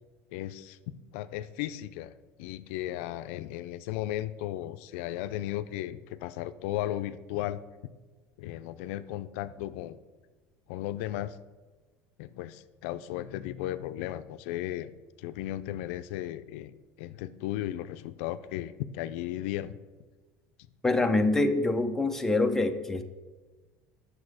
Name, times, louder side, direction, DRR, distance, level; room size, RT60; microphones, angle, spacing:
voice 1, 0.3-0.8 1.1-2.1 2.4-7.6 8.4-10.0 10.7-11.4 12.2-14.9 15.2-16.7 17.0-19.8, left 13 dB, 85° left, 13 dB, 0.4 m, -35 dB
voice 2, 20.8-23.0, left 2 dB, 5° left, 5 dB, 0.5 m, -25 dB
8.6 x 6.4 x 4.8 m, 1.3 s
cardioid pair, 150°, 7 cm